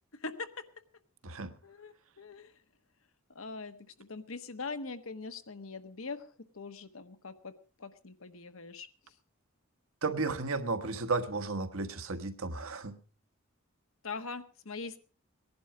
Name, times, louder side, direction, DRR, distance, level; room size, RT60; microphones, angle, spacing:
voice 1, 0.2-0.6 1.6-2.5 3.3-9.1 14.0-15.0, left 4 dB, 70° left, 1.3 m, -42 dB
voice 2, 1.2-1.5 10.0-12.9, right 3 dB, 75° right, 1.4 m, -33 dB
18.5 x 11.0 x 4.9 m
head